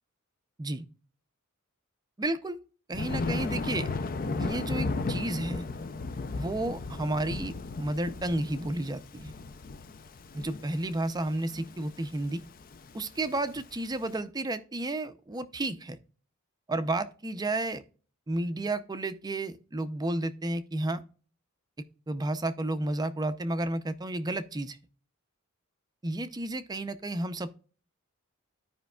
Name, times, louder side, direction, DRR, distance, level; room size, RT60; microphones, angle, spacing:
voice 1, 2.2-2.6 2.9-3.9 4.4-5.7 6.3-9.3 10.3-12.4 12.9-16.0 16.7-17.8 18.3-21.0 22.1-24.8 26.0-27.6, right 2 dB, 20° right, 0.5 m, -32 dB
Thunder, 2.9-14.0, left 3 dB, 40° left, 0.5 m, -35 dB
13.5 x 5.1 x 2.3 m
head